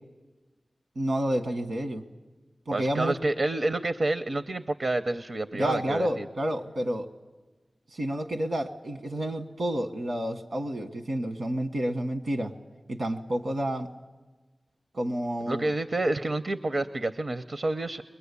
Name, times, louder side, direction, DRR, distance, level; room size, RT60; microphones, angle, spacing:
voice 1, 0.9-2.0 2.7-3.1 5.5-7.1 7.9-12.5 12.9-13.9 14.9-15.6, right 1 dB, 90° right, 5 dB, 1.3 m, -30 dB
voice 2, 2.7-6.3 15.5-18.0, right 2 dB, 65° right, 9 dB, 0.6 m, -29 dB
22.0 x 20.0 x 8.3 m, 1.3 s
cardioid pair, 40°, 0 cm